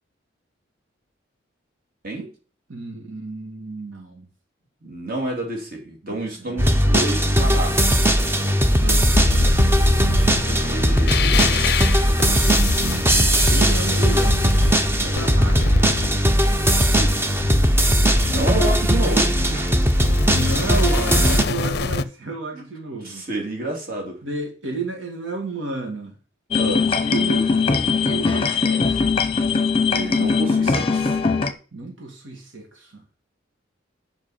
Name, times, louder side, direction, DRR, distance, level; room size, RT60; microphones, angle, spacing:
voice 1, 2.7-4.3 6.0-6.7 8.6-9.7 12.3-14.5 14.9-15.9 17.0-17.3 19.1-19.3 20.1-23.3 24.2-26.2 27.0-27.5 28.0-29.1 31.7-33.0, right 3 dB, 85° right, 2.2 m, -32 dB
voice 2, 4.8-8.1 10.5-11.6 18.3-19.3 19.5-19.7 22.5-22.6 23.0-24.2 26.6-26.9 29.9-31.2, right 1 dB, 45° right, 2.8 m, -29 dB
sound 1, 6.6-21.4, equal, 10° right, 0.7 m, -18 dB
sound 2, 9.1-16.2 17.0-17.8 18.2-22.0, left 5 dB, 55° left, 0.5 m, -27 dB
sound 3, 26.5-31.5, left 4 dB, 30° left, 0.8 m, -20 dB
7.5 x 5.4 x 7.3 m
head